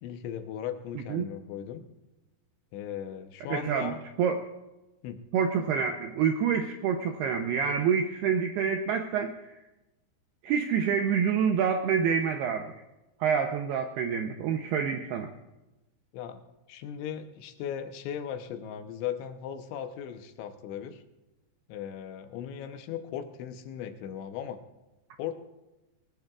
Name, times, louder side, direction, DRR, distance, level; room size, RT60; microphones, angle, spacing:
voice 1, 0.0-1.8 2.7-4.0 5.0-5.2 16.1-16.4 16.7-21.0 21.7-24.6 25.2-25.4, left 9 dB, 80° left, 8 dB, 3.1 m, -37 dB
voice 2, 3.5-3.9 4.2-4.4 5.3-9.6 10.4-12.8 13.2-15.3, right 7 dB, 80° right, 5 dB, 2.3 m, -27 dB
20.0 x 19.5 x 2.4 m, 1.0 s
omnidirectional pair, 5.5 m